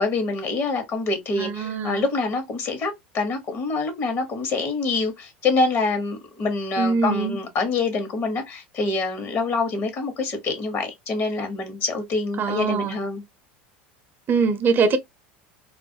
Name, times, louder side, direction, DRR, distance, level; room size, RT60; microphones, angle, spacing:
voice 1, 0.0-13.2, left 3 dB, 45° left, 1.0 m, -26 dB
voice 2, 1.4-2.0 6.8-7.4 12.4-13.0 14.3-15.0, right 5 dB, 40° right, 0.5 m, -22 dB
2.3 x 2.1 x 2.7 m
hypercardioid pair, 85°, 6 cm